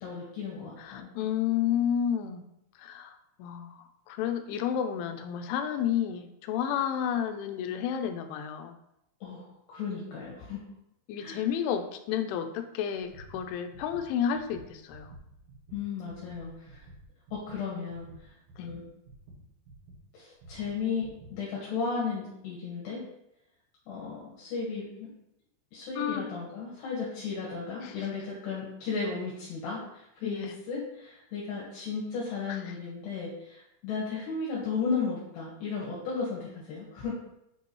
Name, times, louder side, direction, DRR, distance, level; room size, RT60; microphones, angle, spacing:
voice 1, 0.0-1.1 9.2-10.6 11.2-11.4 15.7-16.9 17.3-18.8 20.1-23.0 23.9-25.1 25.7-37.2, left 5 dB, 65° left, -4 dB, 3.3 m, -35 dB
voice 2, 0.8-2.4 2.8-3.1 3.4-3.8 4.1-8.7 11.1-15.1 18.6-18.7 26.0-26.2 27.8-28.0 30.2-30.5, left 9 dB, 80° left, 7 dB, 3.0 m, -31 dB
sound 1, 13.0-20.0 20.4-21.3, right 2 dB, 90° right, 4.3 m, -51 dB
8.8 x 5.5 x 3.1 m, 0.82 s
omnidirectional pair, 5.6 m